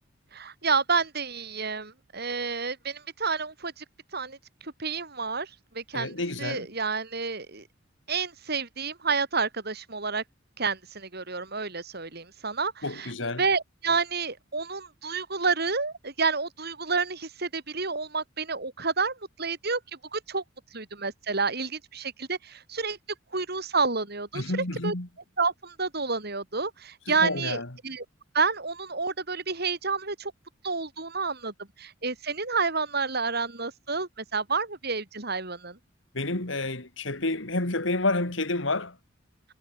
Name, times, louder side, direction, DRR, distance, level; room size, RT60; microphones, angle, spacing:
voice 1, 0.3-3.8 4.1-4.4 4.6-5.5 5.7-7.6 8.1-10.2 10.6-13.1 13.4-19.8 20.1-20.4 20.7-23.0 23.3-24.4 24.8-24.9 25.4-28.0 28.3-30.3 30.6-31.5 31.8-35.8, right 4 dB, 55° right, 4.5 m, -29 dB
voice 2, 5.9-6.7 12.8-13.4 24.3-25.1 27.1-27.7 36.1-38.9, left 2 dB, 70° left, 2.9 m, -29 dB
head